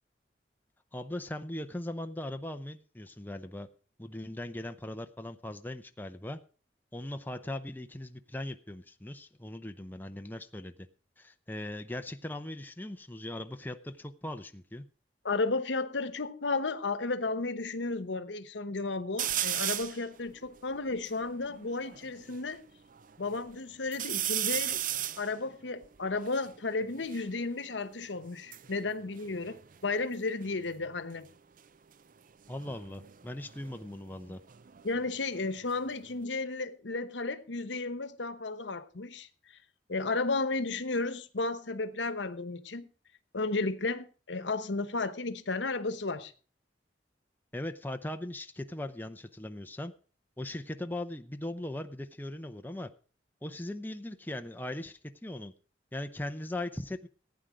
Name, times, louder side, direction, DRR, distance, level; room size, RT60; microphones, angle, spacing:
voice 1, 0.9-3.7 4.0-6.4 6.9-10.9 11.2-14.8 32.5-34.4 47.5-49.9 50.4-52.9 53.4-55.5 55.9-57.1, left 1 dB, 10° left, 0.7 m, -39 dB
voice 2, 15.2-22.6 23.2-24.8 25.2-31.3 34.8-39.3 39.9-42.9 43.3-46.3, left 3 dB, 85° left, 1.0 m, -33 dB
sound 1, 19.2-20.0 20.6-20.7 20.9-22.4 22.9-23.5 23.9-27.3 28.2-30.1 30.4-30.9 32.5-35.1 35.4-36.2, right 11 dB, 50° right, 0.5 m, -36 dB
15.5 x 9.1 x 4.9 m
head